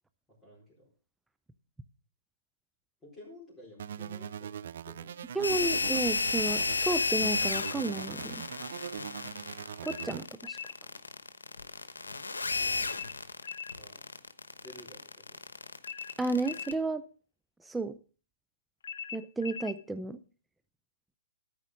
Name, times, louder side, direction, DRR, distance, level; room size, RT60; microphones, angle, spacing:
voice 1, 0.4-0.9 3.0-5.1 12.6-13.0 13.7-14.0 14.6-15.0 15.3-15.4, left 1 dB, 15° left, -6 dB, 4.2 m, -52 dB
sound 1, 3.8-6.8 7.2-10.2, right 9 dB, 60° right, 0.4 m, -41 dB
voice 2, 5.3-8.4 9.8-10.6 16.2-17.0 17.6-18.0 19.1-20.2, right 2 dB, 5° right, 11 dB, 0.5 m, -32 dB
sound 2, 5.4-16.7, left 3 dB, 90° left, 1.1 m, -33 dB
sound 3, 6.8-7.8 9.8-10.8 12.8-13.8 15.8-16.8 18.8-19.8, left 8 dB, 65° left, 0.6 m, -41 dB
13.0 x 5.1 x 6.2 m, 0.39 s
hypercardioid pair, 135°, 0 cm